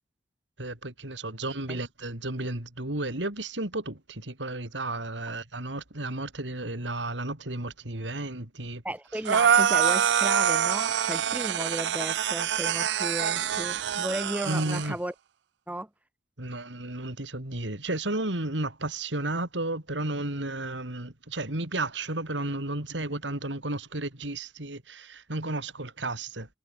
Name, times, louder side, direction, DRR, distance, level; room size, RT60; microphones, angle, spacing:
voice 1, 0.6-8.8 14.4-15.0 16.4-26.5, right 2 dB, 85° right, 3.9 m, -33 dB
voice 2, 8.8-15.1 15.7-15.9, right 1 dB, 10° right, 1.7 m, -34 dB
sound 1, 9.3-14.9, right 8 dB, 70° right, 0.4 m, -25 dB
head